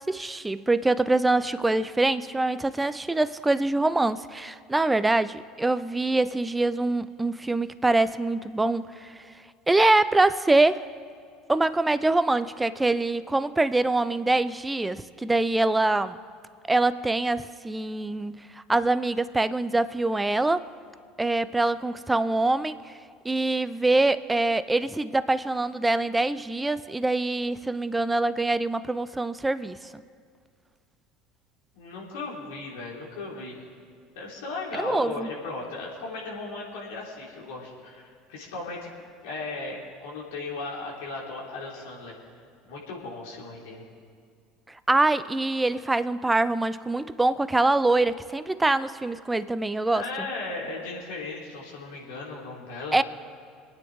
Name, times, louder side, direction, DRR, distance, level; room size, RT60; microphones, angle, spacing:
voice 1, 0.0-9.2 9.7-10.9 11.5-16.2 16.7-20.7 21.2-22.9 23.2-30.0 34.8-35.3 44.9-50.3 52.9-53.0, right 2 dB, 10° right, 14 dB, 0.6 m, -24 dB
voice 2, 31.7-33.6 34.1-38.9 39.2-42.1 42.6-43.8 49.9-53.0, left 3 dB, 70° left, -3 dB, 3.4 m, -36 dB
26.0 x 9.6 x 3.7 m, 2.2 s
hypercardioid pair, 70°, 0 cm